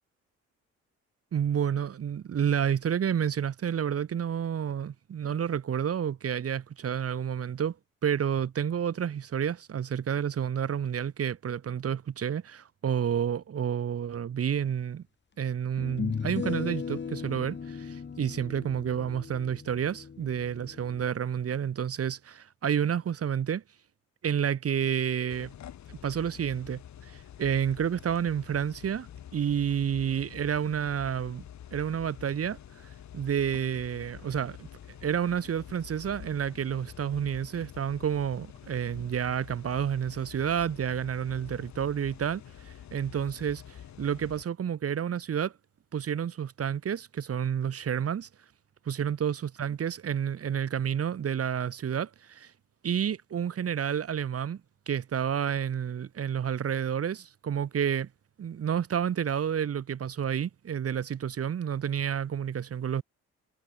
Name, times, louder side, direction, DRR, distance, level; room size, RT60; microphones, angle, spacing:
voice 1, 1.3-7.8 8.0-15.0 15.4-23.6 24.2-25.5 25.9-31.4 31.7-34.7 35.0-45.5 45.9-48.3 48.9-52.5 52.8-54.6 54.9-58.1 58.4-63.0, right 8 dB, 50° right, 1.9 m, -30 dB
sound 1, 14.7-14.8 15.8-21.0, left 6 dB, 35° left, 3.3 m, -37 dB
sound 2, 25.3-44.4, left 10 dB, 65° left, 6.6 m, -48 dB
cardioid pair, 90°, 30 cm